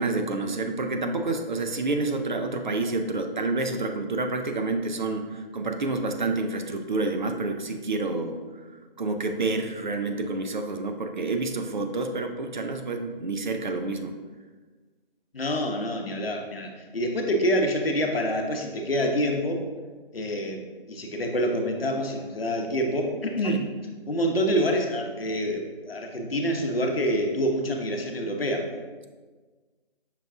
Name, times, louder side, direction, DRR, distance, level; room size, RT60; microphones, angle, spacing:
voice 1, 0.0-8.4 9.0-14.1 23.4-23.6, right 3 dB, 50° right, 5 dB, 0.4 m, -28 dB
voice 2, 15.3-19.6 20.1-23.7 24.1-28.7, equal, 75° left, 2 dB, 0.8 m, -27 dB
5.7 x 2.3 x 3.6 m, 1.4 s
figure-of-eight pair, 155°, 30 cm